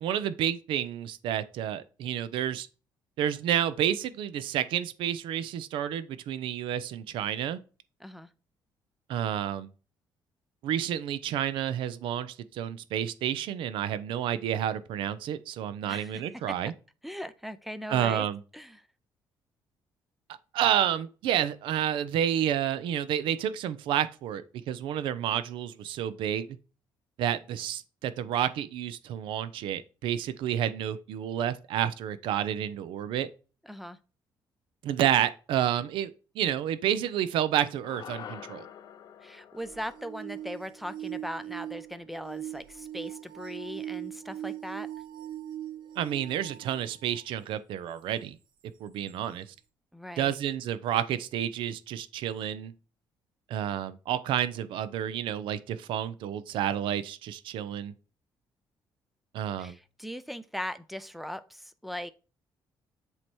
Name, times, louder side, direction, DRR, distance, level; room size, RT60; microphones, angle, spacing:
voice 1, 0.0-2.7 3.2-7.6 9.1-9.7 10.6-16.7 17.9-18.4 20.5-26.5 27.2-33.3 34.8-38.7 46.0-48.4 48.8-49.5 50.2-52.7 53.5-57.9 59.3-59.8, right 10 dB, 80° right, 0.6 m, -30 dB
voice 2, 15.9-16.2 17.0-18.3 18.5-18.8 33.7-34.0 39.2-44.9 49.9-50.3 59.6-62.1, equal, ahead, 0.4 m, -39 dB
sound 1, 37.8-42.3, left 9 dB, 50° left, 0.5 m, -48 dB
sound 2, 39.6-47.3 48.0-48.1 49.1-49.2, right 12 dB, 60° right, 0.9 m, -40 dB
7.7 x 2.9 x 4.4 m
cardioid pair, 155°, 9 cm